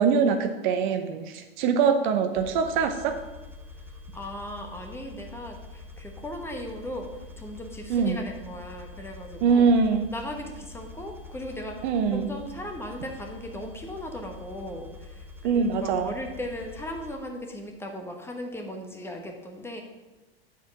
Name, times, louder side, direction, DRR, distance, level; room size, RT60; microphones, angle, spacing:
voice 1, 0.0-3.2 7.9-8.2 9.4-10.1 11.8-12.3 15.4-16.1, right 5 dB, 50° right, 8 dB, 0.7 m, -23 dB
sound 1, 2.3-17.1, left 3 dB, 5° right, 0.8 m, -45 dB
voice 2, 4.1-9.7 10.1-19.8, left 1 dB, 10° left, 2 dB, 1.1 m, -38 dB
8.1 x 4.6 x 5.3 m, 1.1 s
hypercardioid pair, 95°, 30 cm